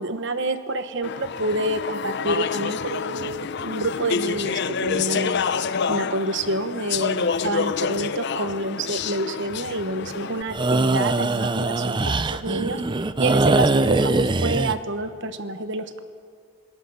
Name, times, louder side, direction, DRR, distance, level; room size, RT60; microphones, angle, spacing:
voice 1, 0.0-5.4 5.9-16.0, right 2 dB, 55° right, 10 dB, 1.1 m, -28 dB
Speech / Chatter, 1.0-10.4, left 6 dB, 50° left, 0.5 m, -28 dB
sound 1, 10.5-14.7, right 2 dB, 20° right, 0.4 m, -22 dB
27.5 x 18.0 x 5.6 m, 2.3 s
head